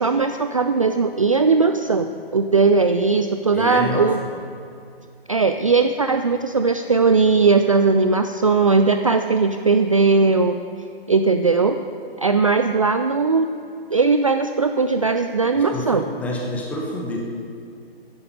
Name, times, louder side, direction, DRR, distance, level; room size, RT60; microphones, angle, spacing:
voice 1, 0.0-2.1 2.3-4.2 5.3-10.6 11.1-11.8 12.2-13.5 13.9-16.0, right 4 dB, 35° right, 7 dB, 0.4 m, -18 dB
voice 2, 3.5-4.1 15.6-17.2, left 1 dB, 5° left, -1 dB, 0.9 m, -28 dB
14.0 x 10.5 x 5.4 m, 2.5 s
figure-of-eight pair, 140°, 31 cm